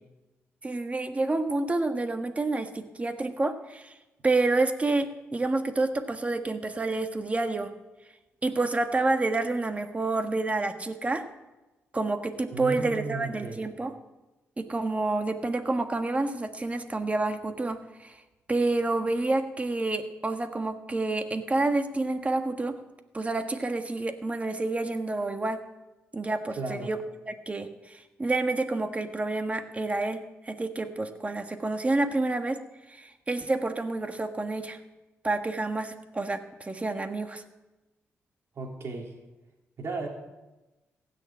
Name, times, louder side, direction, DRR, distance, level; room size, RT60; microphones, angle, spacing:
voice 1, 0.6-3.9 4.2-7.7 8.4-11.2 11.9-13.9 14.6-18.2 18.5-22.8 23.1-25.6 26.1-27.0 27.3-32.6 32.9-34.8 35.2-37.4, right 2 dB, 25° right, 7 dB, 1.6 m, -28 dB
voice 2, 12.5-13.6 26.6-26.9 38.6-39.1 39.8-40.1, right 3 dB, 60° right, 1 dB, 3.4 m, -34 dB
15.5 x 6.7 x 8.7 m, 1.1 s
cardioid pair, 65°, 5 cm